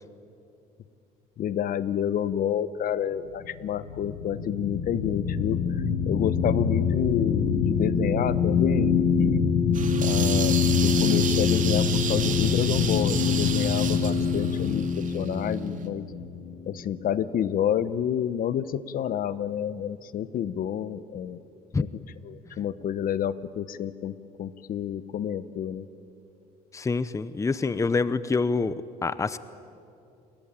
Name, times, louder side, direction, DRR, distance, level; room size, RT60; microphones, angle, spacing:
voice 1, 1.4-9.4 10.0-16.0 16.7-21.4 21.8-21.9 22.2-25.9, left 9 dB, 55° left, 16 dB, 1.0 m, -29 dB
sound 1, 3.4-17.1, left 6 dB, 80° left, 2.9 m, -25 dB
sound 2, 9.7-15.5, right 8 dB, 50° right, 2.4 m, -33 dB
voice 2, 26.7-28.7 29.0-29.4, left 4 dB, 20° left, 15 dB, 0.8 m, -26 dB
29.5 x 22.0 x 9.0 m, 2.7 s
cardioid pair, 110°, 17 cm